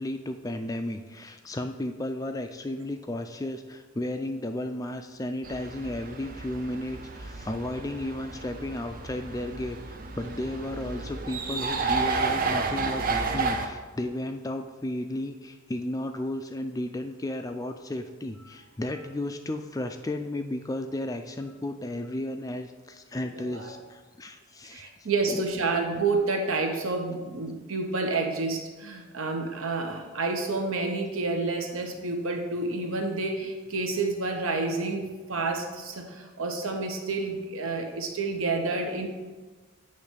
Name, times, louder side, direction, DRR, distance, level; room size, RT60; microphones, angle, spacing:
voice 1, 0.0-25.7, left 1 dB, 15° left, 7 dB, 0.3 m, -34 dB
sound 1, 5.4-13.7, right 4 dB, 40° right, 0.6 m, -31 dB
voice 2, 23.3-23.7 24.7-39.1, right 3 dB, 75° right, 3 dB, 1.0 m, -29 dB
8.5 x 3.2 x 6.2 m, 1.3 s
head